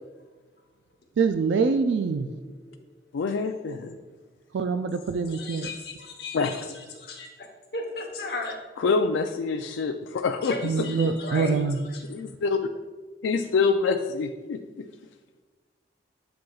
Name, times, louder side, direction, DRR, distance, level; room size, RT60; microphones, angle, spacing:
voice 1, 1.2-2.3 4.5-5.7 10.6-11.8, right 5 dB, 75° right, 9 dB, 0.3 m, -25 dB
voice 2, 2.1-2.8 5.3-8.6 10.4-12.1, left 2 dB, 60° left, 2 dB, 1.0 m, -37 dB
voice 3, 3.1-4.0 6.3-6.6 8.8-10.5 12.1-12.6 13.2-14.9, left 4 dB, 90° left, 6 dB, 0.4 m, -26 dB
7.6 x 7.1 x 2.3 m, 1.3 s
head